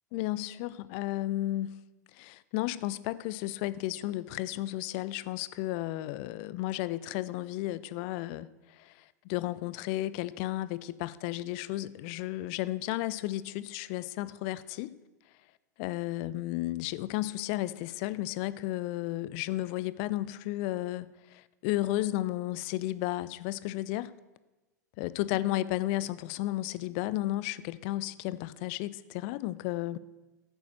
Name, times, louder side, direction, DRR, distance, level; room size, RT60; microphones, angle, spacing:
voice 1, 0.1-1.8 2.1-8.5 8.8-14.9 15.8-24.1 25.0-30.0, left 16 dB, 45° left, 0.5 m, -33 dB
13.5 x 7.0 x 7.6 m
figure-of-eight pair, 90°, 10 cm